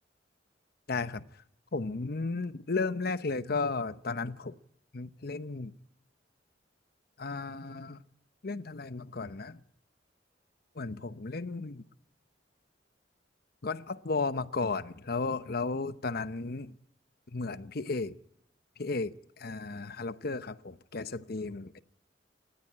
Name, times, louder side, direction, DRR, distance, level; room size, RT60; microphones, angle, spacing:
voice 1, 0.9-1.2 1.7-4.5 4.9-5.7 7.2-8.0 8.4-9.6 10.8-11.8 13.6-16.7 17.3-18.2 18.8-21.8, left 3 dB, 55° left, 0.9 m, -34 dB
28.5 x 14.0 x 8.8 m
head